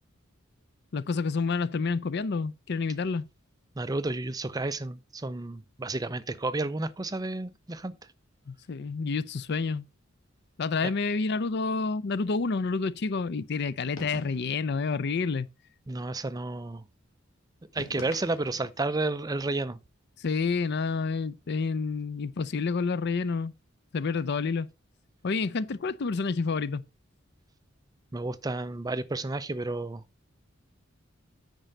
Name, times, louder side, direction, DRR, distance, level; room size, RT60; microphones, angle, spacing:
voice 1, 0.9-3.3 8.5-9.9 10.6-15.5 20.2-23.5 23.9-24.7 25.2-26.8, left 4 dB, 55° left, 0.5 m, -29 dB
voice 2, 3.8-7.9 15.9-16.8 17.7-19.8 28.1-30.0, right 2 dB, 20° right, 0.5 m, -31 dB
sound 1, 14.0-14.7 17.8-18.8, left 1 dB, 90° left, 2.2 m, -44 dB
9.0 x 5.4 x 5.1 m
head